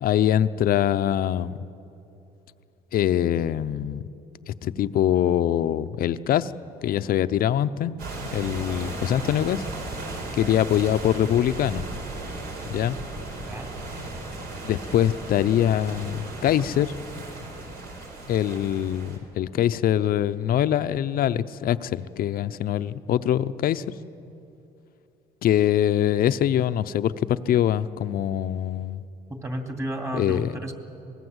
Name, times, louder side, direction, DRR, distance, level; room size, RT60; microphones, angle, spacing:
voice 1, 0.0-1.6 2.9-4.0 4.5-6.5 6.8-7.9 8.3-9.6 10.4-11.8 12.7-13.0 14.6-16.9 18.3-23.8 25.4-29.0 30.1-30.6, left 11 dB, 60° left, 13 dB, 0.7 m, -23 dB
sound 1, 8.0-19.2, right 2 dB, 65° right, 4.8 m, -36 dB
voice 2, 29.3-30.7, right 1 dB, 15° right, 4 dB, 2.6 m, -32 dB
24.5 x 20.0 x 8.1 m, 2.8 s
cardioid pair, 110°, 17 cm